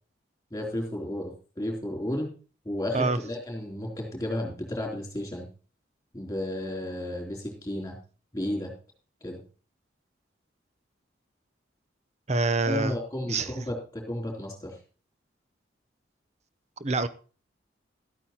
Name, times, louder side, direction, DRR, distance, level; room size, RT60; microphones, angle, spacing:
voice 1, 0.5-2.3 2.6-5.5 6.1-8.0 8.3-8.7 9.2-9.4 12.6-14.8, left 1 dB, 15° left, 4.0 m, -33 dB
voice 2, 12.3-12.9 13.3-13.6 16.8-17.1, right 3 dB, 35° right, 0.7 m, -26 dB
13.0 x 8.9 x 4.3 m
head